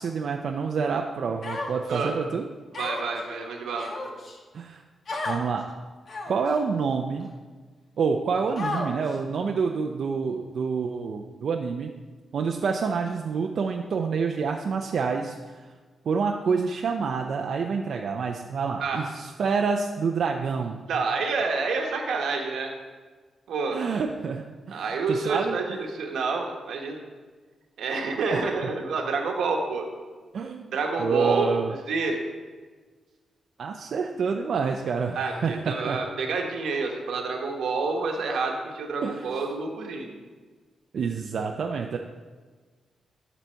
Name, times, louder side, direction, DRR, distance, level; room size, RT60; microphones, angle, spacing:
voice 1, 0.0-2.4 4.5-4.8 5.3-5.6 6.3-7.3 8.0-11.9 12.3-15.4 16.1-20.8 23.7-25.6 28.3-28.4 30.3-30.7 31.0-31.7 33.6-36.0 39.0-39.4 40.9-42.0, right 5 dB, 65° right, 2 dB, 0.5 m, -27 dB
Human voice, 1.4-2.0 2.7-3.2 3.8-4.4 5.1-5.4 6.1-6.5 7.2-7.3 8.6-9.2, left 2 dB, 55° left, 1.2 m, -32 dB
voice 2, 2.7-3.9 18.8-19.0 20.9-22.7 23.5-23.8 24.7-27.0 27.8-29.9 30.7-32.2 35.1-40.1, right 4 dB, 90° right, 2 dB, 1.2 m, -28 dB
12.0 x 4.1 x 4.5 m, 1.4 s
cardioid pair, 105°, 0 cm